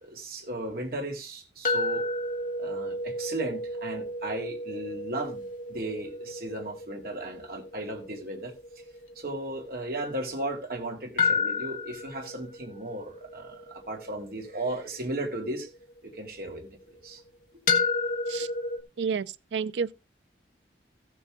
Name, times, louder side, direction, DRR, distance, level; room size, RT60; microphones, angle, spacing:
voice 1, 0.0-2.0 2.6-8.5 9.2-15.7 16.0-17.2, right 1 dB, 55° right, 2.3 m, -36 dB
sound 1, 1.6-10.6 11.2-16.3 17.7-18.8, left 3 dB, 45° left, 1.5 m, -32 dB
voice 2, 19.0-19.9, right 6 dB, 85° right, 0.5 m, -30 dB
15.0 x 7.0 x 3.6 m
head